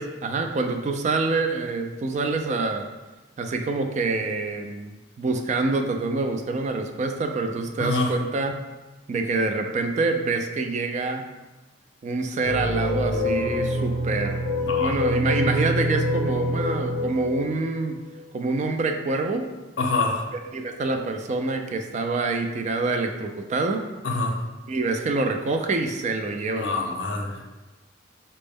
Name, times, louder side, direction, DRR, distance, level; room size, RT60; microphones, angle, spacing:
voice 1, 0.0-2.9 3.4-8.6 9.1-11.2 12.0-14.5 14.8-18.0 18.3-19.4 20.5-23.8 24.7-26.7, right 3 dB, 40° right, 5 dB, 0.3 m, -26 dB
voice 2, 7.8-8.1 14.6-15.0 19.8-20.3 24.0-24.3 26.6-27.4, left 3 dB, 70° left, 2 dB, 0.6 m, -26 dB
sound 1, 12.4-18.6, left 1 dB, 65° right, 0.9 m, -26 dB
4.2 x 2.0 x 3.4 m, 1.1 s
head